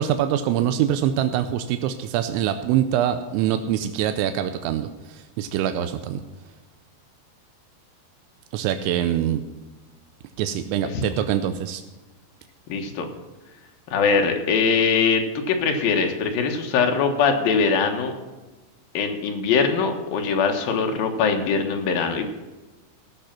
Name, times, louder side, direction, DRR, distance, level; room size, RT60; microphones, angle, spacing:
voice 1, 0.0-6.2 8.5-9.4 10.4-11.8, right 10 dB, 85° right, 9 dB, 3.0 m, -24 dB
voice 2, 12.7-13.1 13.9-18.1 18.9-22.3, left 5 dB, 65° left, 4 dB, 2.6 m, -22 dB
16.5 x 6.5 x 5.8 m, 1.2 s
omnidirectional pair, 5.2 m